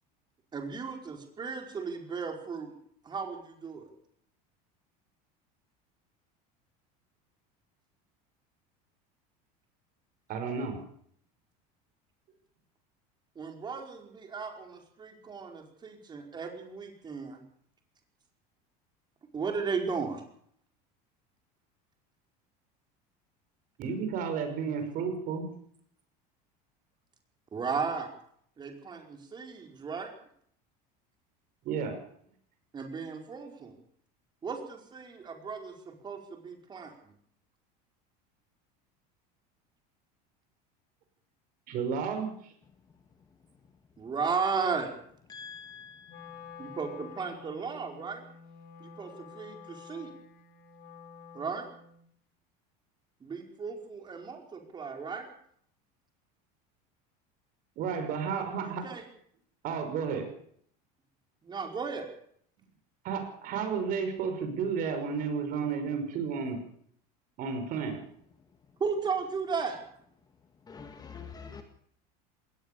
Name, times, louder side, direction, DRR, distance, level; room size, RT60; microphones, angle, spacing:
voice 1, 0.5-2.7 3.0-3.9 13.3-17.4 19.3-20.2 27.5-28.1 28.6-30.1 32.7-33.7 34.4-36.9 44.0-44.9 46.6-48.2 48.8-50.1 51.3-51.7 53.2-55.3 58.6-59.0 61.4-62.1 68.8-69.8, right 5 dB, 20° right, 3 dB, 4.9 m, -35 dB
voice 2, 10.3-10.8 23.8-25.5 31.6-32.0 41.7-42.3 57.8-58.8 59.6-60.3 63.0-66.6 67.4-68.0, right 6 dB, 45° right, 7 dB, 5.8 m, -32 dB
voice 3, 45.3-46.7 70.7-71.6, left 6 dB, 20° left, 7 dB, 2.0 m, -46 dB
Wind instrument woodwind instrument, 46.1-52.1, left 6 dB, 55° left, 3.3 m, -49 dB
21.0 x 18.5 x 6.9 m, 0.65 s
cardioid pair, 145°, 19 cm